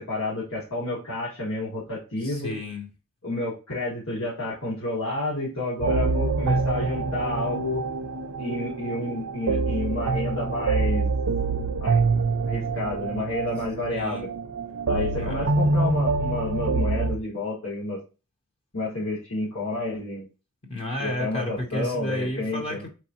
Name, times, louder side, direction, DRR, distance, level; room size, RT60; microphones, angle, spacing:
voice 1, 0.0-2.5 3.2-7.8 8.4-11.1 11.8-12.0 12.5-14.3 14.9-18.0 18.7-20.3 21.0-22.8, left 2 dB, 75° left, -7 dB, 1.9 m, -30 dB
voice 2, 2.2-2.9 13.9-14.2 15.2-15.5 20.6-22.9, left 1 dB, 25° left, 3 dB, 0.8 m, -32 dB
sound 1, 5.8-17.2, right 3 dB, 90° right, 0.5 m, -26 dB
4.5 x 3.7 x 2.8 m, 0.31 s
head